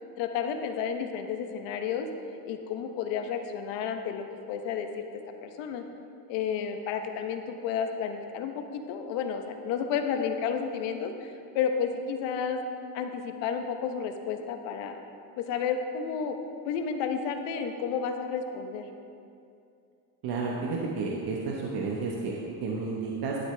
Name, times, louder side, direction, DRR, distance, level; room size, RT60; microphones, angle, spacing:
voice 1, 0.2-2.1 2.5-5.0 5.4-5.8 6.3-12.6 12.9-15.0 15.4-16.4 16.6-18.9, left 7 dB, 80° left, 6 dB, 1.0 m, -31 dB
voice 2, 20.2-23.4, right 4 dB, 60° right, -2 dB, 1.2 m, -31 dB
12.0 x 8.3 x 3.4 m, 2.5 s
cardioid pair, 110°, 43 cm